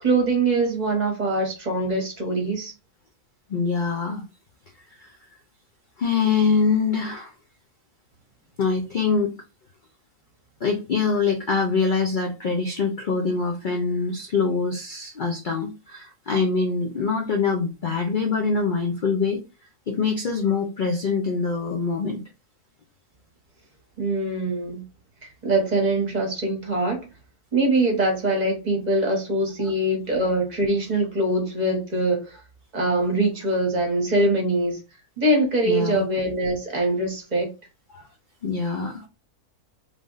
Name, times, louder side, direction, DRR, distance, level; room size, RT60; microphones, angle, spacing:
voice 1, 0.0-2.7 24.0-24.8 25.4-27.0 27.5-32.4 32.7-34.8 35.2-37.5, right 2 dB, 30° right, 1 dB, 1.1 m, -23 dB
voice 2, 3.5-4.2 5.0-5.1 6.0-7.3 8.6-9.4 10.6-19.4 19.9-22.2 35.7-36.0 37.9-38.1 38.4-39.1, left 5 dB, 75° left, 2 dB, 0.4 m, -24 dB
3.3 x 2.5 x 3.8 m, 0.29 s
omnidirectional pair, 1.6 m